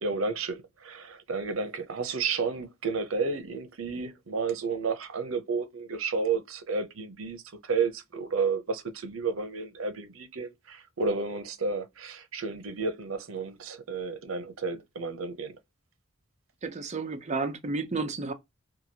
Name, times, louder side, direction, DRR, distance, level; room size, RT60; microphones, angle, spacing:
voice 1, 0.0-15.5, right 4 dB, 85° right, 0.7 m, -31 dB
voice 2, 16.6-18.3, right 3 dB, 35° right, 0.6 m, -31 dB
3.0 x 2.3 x 2.8 m
head